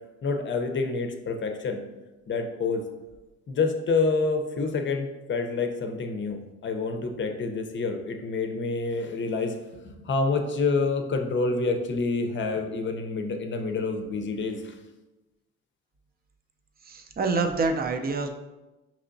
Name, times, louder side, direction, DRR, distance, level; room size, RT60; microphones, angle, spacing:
voice 1, 0.2-1.8 2.3-2.9 3.5-9.6 9.8-14.8, left 4 dB, 40° left, 5 dB, 0.6 m, -28 dB
voice 2, 16.9-18.3, right 3 dB, 30° right, 6 dB, 0.5 m, -26 dB
5.6 x 3.0 x 2.5 m, 1.1 s
cardioid pair, 90°, 30 cm